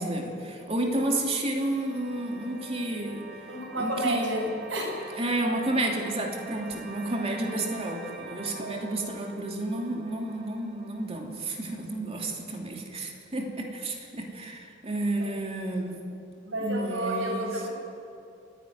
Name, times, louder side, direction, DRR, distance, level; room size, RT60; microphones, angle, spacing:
voice 1, 0.0-3.2 3.8-4.5 5.2-16.0 16.6-17.5, right 1 dB, 30° right, 1 dB, 2.9 m, -31 dB
sound 1, 0.9-11.9, right 3 dB, 55° right, 2.1 m, -46 dB
voice 2, 3.5-4.4 4.7-4.9 8.4-8.8 15.2-15.4 16.5-17.7, right 1 dB, 80° right, -1 dB, 7.0 m, -31 dB
29.5 x 11.0 x 9.4 m, 2.5 s
head